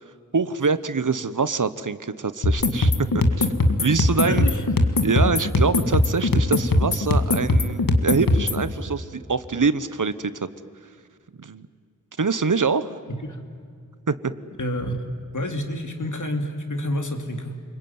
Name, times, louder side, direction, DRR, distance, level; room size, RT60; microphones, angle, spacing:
voice 1, 0.3-3.5 3.8-4.5 5.0-10.5 11.4-11.7 12.2-12.9 14.1-14.2, right 4 dB, 65° right, 14 dB, 1.0 m, -24 dB
sound 1, 2.4-8.6, left 2 dB, 85° left, 1.8 m, -20 dB
voice 2, 4.2-4.6 13.1-13.4 14.6-15.1 15.3-17.6, left 1 dB, 65° left, 5 dB, 2.7 m, -29 dB
29.0 x 21.5 x 9.5 m, 2.2 s
wide cardioid pair, 60°, 33 cm